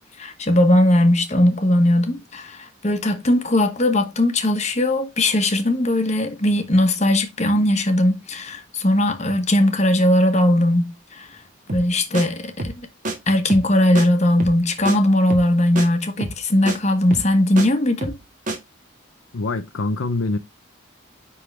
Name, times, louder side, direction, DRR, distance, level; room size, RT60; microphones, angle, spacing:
voice 1, 0.2-11.3 11.7-12.9 13.3-18.2, left 1 dB, 35° left, 1.1 m, -19 dB
sound 1, 11.7-11.9 12.1-12.3 12.6-12.8 13.0-13.2 13.5-13.7 14.0-14.1 14.4-14.6 14.9-15.0 15.3-15.5 15.8-15.9 16.2-16.4 16.7-16.8 17.1-17.7 18.0-18.2 18.5-18.6, right 2 dB, 40° right, 1.6 m, -28 dB
voice 2, 19.3-20.4, left 3 dB, 75° left, 0.6 m, -24 dB
9.8 x 3.8 x 3.3 m
head